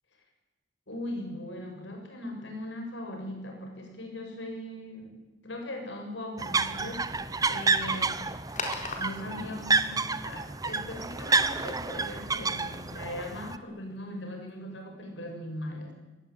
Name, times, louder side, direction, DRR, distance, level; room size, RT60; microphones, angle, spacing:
voice 1, 0.9-5.2 5.4-7.1 7.5-8.2 9.0-15.9, left 1 dB, 70° left, 2 dB, 7.1 m, -39 dB
sound 1, 6.4-13.6, right 4 dB, 20° right, 0.9 m, -29 dB
sound 2, 8.5-14.5, left 3 dB, 40° left, 4.2 m, -44 dB
24.0 x 19.0 x 9.0 m, 1.1 s
head